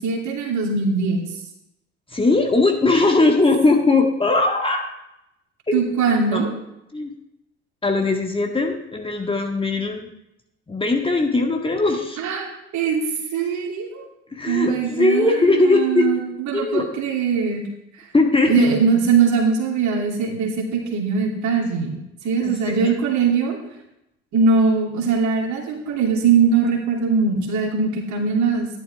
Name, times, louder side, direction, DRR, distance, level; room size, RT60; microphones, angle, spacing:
voice 1, 0.0-1.4 5.7-6.5 12.2-14.0 14.4-17.6 18.0-18.1 18.5-22.0 22.2-23.6 24.3-28.7, right 5 dB, 50° right, 0 dB, 2.9 m, -21 dB
voice 2, 2.1-4.9 5.7-5.8 6.3-6.4 6.9-7.1 7.8-10.1 10.7-12.2 14.3-16.1 16.5-16.9 18.1-18.7 22.4-22.9, left 3 dB, 15° left, 2 dB, 1.8 m, -19 dB
13.0 x 11.0 x 3.5 m, 0.85 s
figure-of-eight pair, 60°, 36 cm